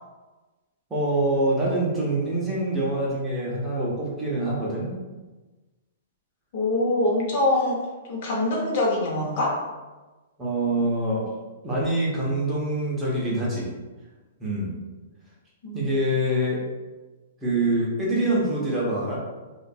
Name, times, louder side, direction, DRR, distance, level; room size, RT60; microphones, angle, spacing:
voice 1, 0.9-4.9 10.4-11.3 11.6-13.7 14.4-14.7 15.7-16.6 17.4-19.2, right 1 dB, 15° right, -6 dB, 0.6 m, -25 dB
voice 2, 6.5-7.8 8.1-9.6 15.6-16.0, left 2 dB, 50° left, -3 dB, 0.7 m, -24 dB
2.4 x 2.2 x 2.6 m, 1.2 s
hypercardioid pair, 155°, 0 cm